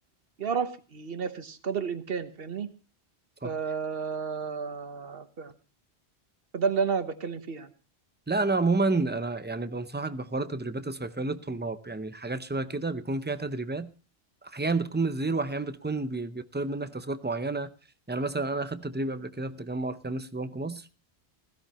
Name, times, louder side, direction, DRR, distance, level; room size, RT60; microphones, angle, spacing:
voice 1, 0.4-2.7 3.4-5.5 6.5-7.7, right 6 dB, 60° right, 1.3 m, -31 dB
voice 2, 8.3-13.9 14.4-17.7 18.1-20.9, right 3 dB, 15° right, 0.4 m, -30 dB
16.0 x 15.5 x 3.0 m
omnidirectional pair, 1.1 m